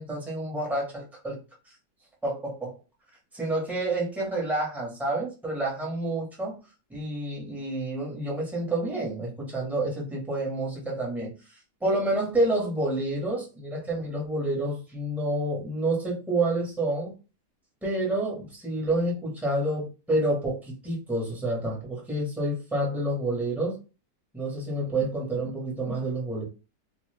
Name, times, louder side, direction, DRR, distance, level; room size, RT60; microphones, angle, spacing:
voice 1, 0.0-1.4 2.2-2.8 3.3-6.6 6.9-17.1 17.8-23.8 24.3-26.4, right 1 dB, ahead, 0.7 m, -29 dB
2.5 x 2.3 x 3.2 m
omnidirectional pair, 1.8 m